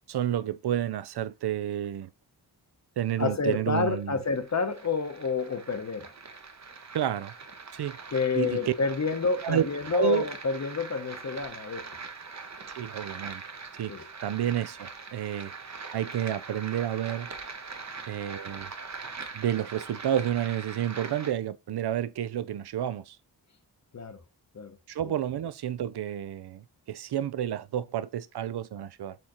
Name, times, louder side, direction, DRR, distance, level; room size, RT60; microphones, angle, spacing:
voice 1, 0.1-2.1 3.0-4.2 6.9-7.3 7.7-8.0 8.4-8.7 9.4-10.3 12.7-13.4 13.8-15.5 15.9-17.3 18.1-18.7 19.3-23.2 24.9-29.2, right 10 dB, 65° right, 0.5 m, -30 dB
voice 2, 3.2-6.1 8.1-11.9 13.9-14.1 23.9-24.2 24.5-24.8 25.0-25.1, left 4 dB, 40° left, 0.8 m, -29 dB
sound 1, 4.0-21.3, right 4 dB, 40° right, 0.8 m, -42 dB
4.4 x 3.8 x 2.9 m
wide cardioid pair, 70°, 43 cm